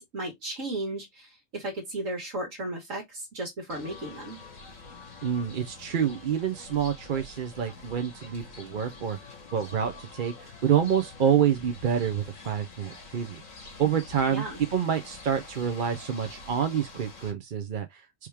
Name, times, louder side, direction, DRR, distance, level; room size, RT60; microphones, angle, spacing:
voice 1, 0.0-4.4 14.3-14.6, right 1 dB, 75° right, 1.9 m, -35 dB
sound 1, 3.7-17.3, left 3 dB, 75° left, 2.0 m, -46 dB
voice 2, 5.2-9.2 9.5-13.4 13.8-14.4 14.7-18.1, right 8 dB, 50° right, 0.7 m, -27 dB
4.9 x 3.0 x 3.4 m
omnidirectional pair, 1.4 m